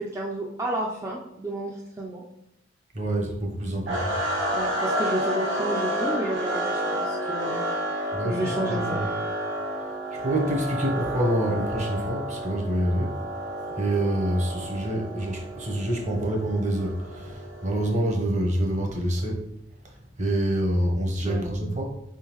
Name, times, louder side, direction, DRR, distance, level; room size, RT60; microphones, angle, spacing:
voice 1, 0.0-2.2 4.5-7.6 8.2-9.0 21.3-21.5, right 1 dB, 15° right, -3 dB, 0.4 m, -31 dB
voice 2, 2.9-4.1 8.1-9.1 9.8-19.4 19.8-21.8, right 1 dB, 35° right, -1 dB, 0.9 m, -27 dB
sound 1, 3.9-18.0, equal, 70° right, 1.4 m, -30 dB
4.6 x 3.6 x 3.0 m, 0.82 s
head